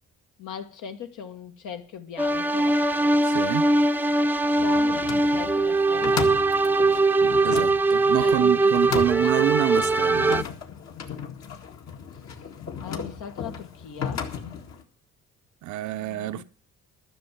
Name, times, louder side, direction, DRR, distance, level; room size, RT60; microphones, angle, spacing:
voice 1, 0.4-2.8 4.6-6.3 8.2-9.3 12.8-14.2 16.0-16.4, left 7 dB, 80° left, 1.6 m, -39 dB
sound 1, 2.2-10.4, right 2 dB, 5° right, 0.6 m, -21 dB
voice 2, 3.2-3.7 7.4-10.4 15.6-16.4, right 13 dB, 75° right, 0.7 m, -27 dB
Oar Hinges On Rowboat, 4.5-14.8, left 6 dB, 60° left, 2.0 m, -35 dB
12.0 x 6.1 x 9.0 m
cardioid pair, 90°, 30 cm